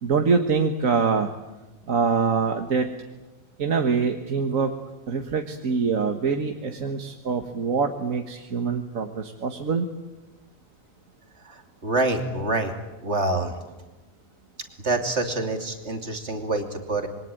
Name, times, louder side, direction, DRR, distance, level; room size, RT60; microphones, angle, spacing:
voice 1, 0.0-1.3 1.9-2.9 3.6-4.7 5.1-9.9, right 5 dB, 70° right, 5 dB, 1.8 m, -24 dB
voice 2, 11.4-12.7 13.0-13.6 14.8-17.1, right 2 dB, 50° right, 5 dB, 3.2 m, -26 dB
26.5 x 23.0 x 9.1 m, 1.1 s
omnidirectional pair, 1.5 m